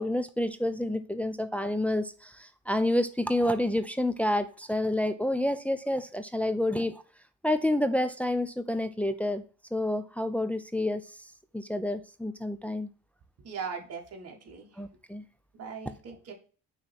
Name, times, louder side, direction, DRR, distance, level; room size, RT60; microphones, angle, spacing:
voice 1, 0.0-7.0 7.4-9.4 9.7-11.0 11.5-12.9 14.8-15.2, left 1 dB, 5° left, 0.5 m, -29 dB
voice 2, 13.4-14.8 15.5-16.3, right 5 dB, 55° right, 1.6 m, -39 dB
6.0 x 3.2 x 5.8 m
cardioid pair, 90°, 30 cm